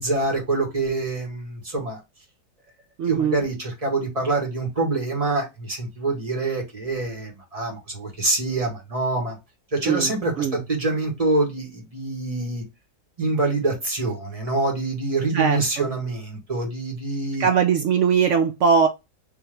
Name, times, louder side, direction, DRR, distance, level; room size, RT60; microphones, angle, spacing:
voice 1, 0.0-2.0 3.1-9.4 9.7-12.6 13.2-17.5, right 2 dB, 20° right, 1.5 m, -25 dB
voice 2, 3.0-3.4 9.8-10.6 15.3-15.9 17.4-18.9, right 6 dB, 75° right, 0.6 m, -21 dB
3.6 x 2.9 x 3.1 m
omnidirectional pair, 1.8 m